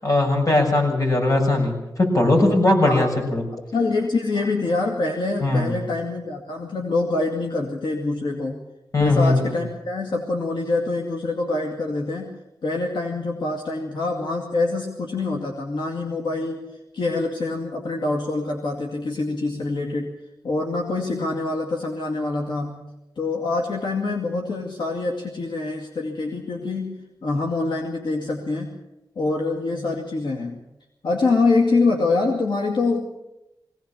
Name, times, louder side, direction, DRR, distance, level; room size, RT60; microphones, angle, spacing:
voice 1, 0.0-3.4 5.4-5.7 8.9-9.6, left 2 dB, 45° left, 1 dB, 6.8 m, -19 dB
voice 2, 3.7-8.6 9.0-12.3 12.6-16.6 16.9-20.1 20.4-22.9 23.2-28.7 29.2-30.6 31.0-33.2, left 3 dB, 75° left, 1 dB, 2.3 m, -25 dB
21.5 x 18.0 x 7.3 m, 0.92 s
wide cardioid pair, 85°, 8 cm